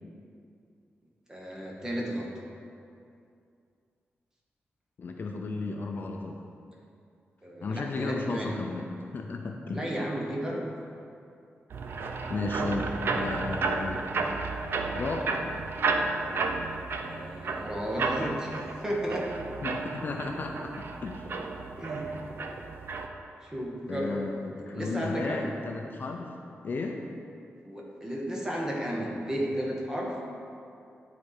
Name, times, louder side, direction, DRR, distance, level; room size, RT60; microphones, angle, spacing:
voice 1, 1.3-2.3 7.4-8.5 9.7-10.7 17.0-19.3 21.8-22.1 23.4-24.2 24.7-25.5 27.6-30.3, equal, 15° right, -2 dB, 1.2 m, -33 dB
voice 2, 5.0-6.4 7.6-9.8 12.3-14.0 14.9-15.3 19.6-21.3 23.9-26.3 26.6-27.0, left 3 dB, 50° left, 2 dB, 0.5 m, -34 dB
sound 1, 11.7-23.1, right 3 dB, 60° right, 0.5 m, -32 dB
10.0 x 4.2 x 4.9 m, 2.5 s
wide cardioid pair, 155°, 4 cm